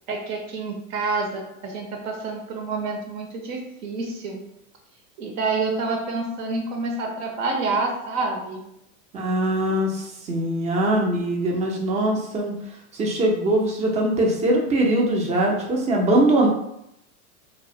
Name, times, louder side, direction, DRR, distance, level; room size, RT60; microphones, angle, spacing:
voice 1, 0.1-4.4 5.2-8.6, right 3 dB, 65° right, 2 dB, 0.8 m, -28 dB
voice 2, 9.1-12.5 12.9-16.5, right 1 dB, 15° right, 0 dB, 0.4 m, -22 dB
2.3 x 2.1 x 2.7 m, 0.80 s
hypercardioid pair, 105°, 44 cm